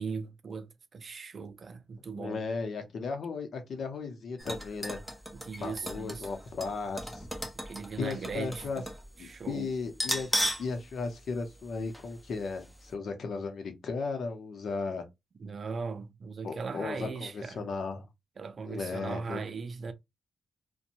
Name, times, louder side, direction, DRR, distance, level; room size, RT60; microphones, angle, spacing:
voice 1, 0.0-2.4 5.3-6.3 7.5-8.9 9.2-9.7 15.4-17.6 18.4-19.9, right 5 dB, 50° right, 0.4 m, -39 dB
voice 2, 2.1-5.0 5.6-7.3 8.0-8.8 9.2-15.0 16.4-18.1 18.6-19.4, left 4 dB, 70° left, 0.7 m, -36 dB
sound 1, 4.4-9.1 9.3-9.4 9.9-10.7 11.1-11.2 11.9-12.1 12.5-12.6, equal, ahead, 0.7 m, -35 dB
2.6 x 2.2 x 2.8 m
cardioid pair, 90°, 0 cm